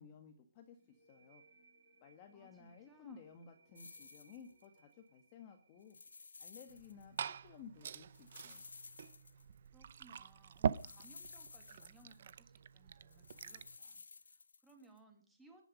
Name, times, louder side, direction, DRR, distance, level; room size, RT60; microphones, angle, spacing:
voice 1, 0.0-1.4 2.0-6.0 6.4-8.7, left 6 dB, 20° left, 5 dB, 1.5 m, -56 dB
sound 1, 0.8-8.2, right 4 dB, 20° right, 6.1 m, -70 dB
voice 2, 2.3-3.3 9.7-15.6, right 2 dB, 5° right, 3 dB, 2.4 m, -65 dB
sound 2, 3.8-4.8 5.8-7.2 7.5-7.6 8.1-9.7 10.5-12.3 13.1-15.0, left 4 dB, 75° left, 1.1 m, -56 dB
Liquid, 6.7-13.8, right 7 dB, 35° right, 0.7 m, -43 dB
21.0 x 11.0 x 5.4 m, 0.42 s
hypercardioid pair, 175°, 0 cm